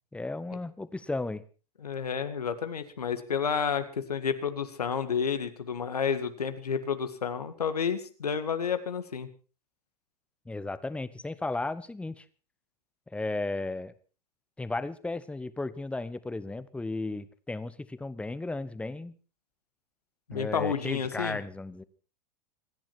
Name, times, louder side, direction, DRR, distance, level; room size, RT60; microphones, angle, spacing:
voice 1, 0.1-1.4 10.4-12.2 13.1-13.9 14.6-19.1 20.3-21.8, left 2 dB, 5° left, 15 dB, 1.0 m, -34 dB
voice 2, 1.8-9.3 20.3-21.4, left 6 dB, 75° left, 9 dB, 1.9 m, -30 dB
26.5 x 10.5 x 4.4 m, 0.36 s
figure-of-eight pair, 90°, 20 cm